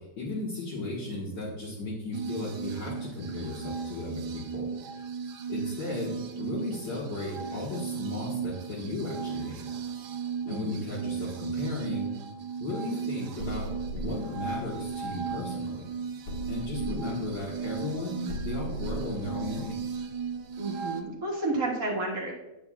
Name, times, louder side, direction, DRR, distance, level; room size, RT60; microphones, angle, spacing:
voice 1, 0.2-4.7 5.5-9.6 10.5-12.1 12.6-15.9 16.5-19.8, left 2 dB, 65° left, -8 dB, 2.3 m, -35 dB
sound 1, 2.1-21.0, right 6 dB, 70° right, 1.4 m, -36 dB
voice 2, 10.5-10.8 20.6-22.3, right 2 dB, 55° right, -3 dB, 2.1 m, -31 dB
sound 2, 13.4-15.7 16.3-20.9, right 1 dB, 85° left, 2.6 m, -39 dB
11.0 x 8.0 x 2.4 m, 1.0 s
omnidirectional pair, 1.9 m